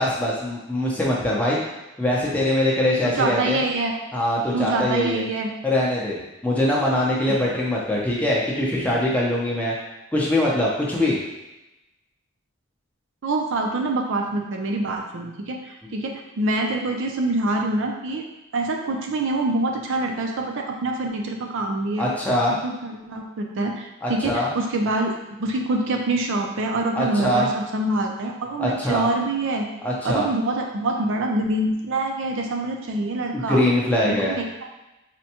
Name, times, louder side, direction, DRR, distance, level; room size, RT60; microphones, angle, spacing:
voice 1, 0.0-1.6 2.0-3.6 4.1-5.2 5.6-9.7 10.1-11.2 22.0-22.6 24.0-24.5 27.0-27.5 28.6-29.0 29.8-30.3 33.3-34.4, left 1 dB, 5° left, -5 dB, 0.5 m, -22 dB
voice 2, 3.0-4.0 4.5-5.5 7.3-7.4 13.2-18.3 18.5-22.1 22.5-25.1 25.4-29.7 30.0-33.6 34.0-34.7, right 2 dB, 60° right, 2 dB, 0.5 m, -25 dB
4.2 x 2.2 x 2.8 m, 0.98 s
head